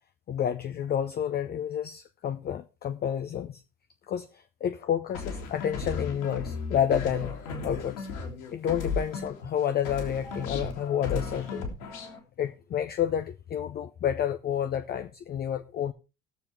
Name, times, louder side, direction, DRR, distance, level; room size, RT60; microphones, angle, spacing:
voice 1, 0.3-3.6 4.1-8.1 8.5-11.8 12.4-15.9, left 9 dB, 20° left, 0.5 m, -30 dB
sound 1, 5.1-9.6 9.8-12.2, left 4 dB, 60° left, 2.4 m, -35 dB
20.0 x 7.0 x 3.2 m
figure-of-eight pair, 60°, 46 cm